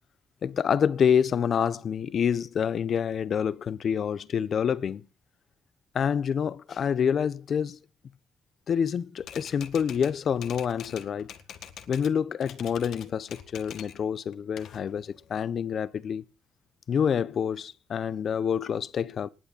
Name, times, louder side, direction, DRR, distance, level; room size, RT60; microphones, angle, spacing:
voice 1, 0.4-5.0 5.9-7.8 8.7-11.3 11.9-16.2 16.9-19.3, left 7 dB, 60° left, 0.9 m, -27 dB
Typewriter, 9.2-12.1 12.4-14.0 14.3-15.4, left 9 dB, 80° left, 1.8 m, -45 dB
20.0 x 8.7 x 4.2 m
cardioid pair, 70°, 0 cm